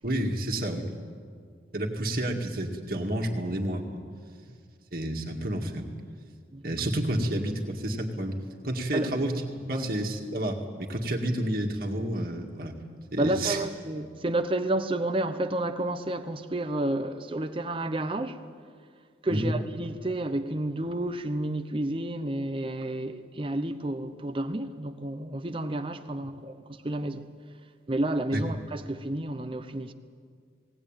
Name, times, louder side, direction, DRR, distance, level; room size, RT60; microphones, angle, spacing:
voice 1, 0.0-0.9 1.7-4.0 4.9-5.9 6.6-9.4 9.7-12.8 13.1-13.6 19.3-19.5 28.3-28.4, right 1 dB, 50° right, 2.2 m, -30 dB
voice 2, 13.2-18.4 19.2-27.3 27.9-29.9, right 1 dB, 30° right, 0.9 m, -30 dB
19.5 x 18.0 x 9.0 m
head